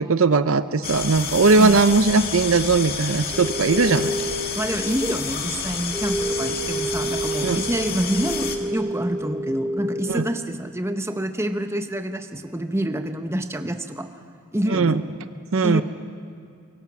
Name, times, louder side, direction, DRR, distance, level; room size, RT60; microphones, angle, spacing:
voice 1, 0.0-4.1 7.4-7.6 10.1-10.3 14.7-15.0 15.5-15.8, right 4 dB, 65° right, 12 dB, 0.6 m, -19 dB
sound 1, 0.8-8.6, left 6 dB, 45° left, 1.8 m, -30 dB
sound 2, 3.3-10.0, right 1 dB, 5° left, 5.0 m, -30 dB
voice 2, 4.5-14.1 14.5-15.0 15.6-15.8, right 1 dB, 10° right, 7 dB, 0.8 m, -27 dB
24.5 x 23.0 x 6.1 m, 2.3 s
head